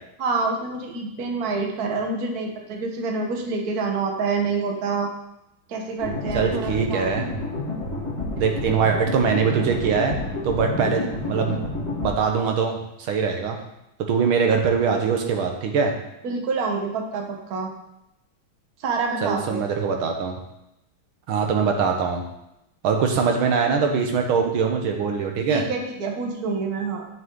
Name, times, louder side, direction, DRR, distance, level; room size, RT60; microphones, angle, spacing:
voice 1, 0.2-5.1 5.7-7.1 16.2-17.7 18.8-19.6 25.5-27.1, right 4 dB, 50° right, 2 dB, 1.5 m, -27 dB
sound 1, 6.0-12.1, left 2 dB, 15° left, 1.7 m, -29 dB
voice 2, 6.3-7.3 8.4-10.2 10.4-11.6 12.0-13.6 14.1-15.9 19.2-20.4 21.3-22.2 22.8-25.6, right 6 dB, 80° right, 3 dB, 1.8 m, -22 dB
10.5 x 6.0 x 3.8 m, 0.86 s
omnidirectional pair, 2.3 m